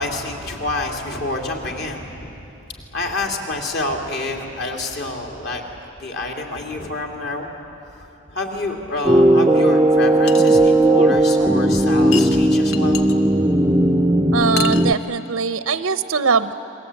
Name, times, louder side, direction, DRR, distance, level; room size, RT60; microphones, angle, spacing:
voice 1, 0.0-7.5 7.8-13.0, left 2 dB, 55° left, 1 dB, 3.0 m, -28 dB
sound 1, 9.0-14.9, right 1 dB, 10° right, 0.5 m, -16 dB
sound 2, 10.3-10.5 12.1-13.1 14.4-14.9, left 9 dB, 75° left, 1.3 m, -29 dB
voice 2, 14.3-16.5, right 5 dB, 90° right, 11 dB, 0.7 m, -21 dB
30.0 x 22.0 x 8.7 m, 2.8 s
head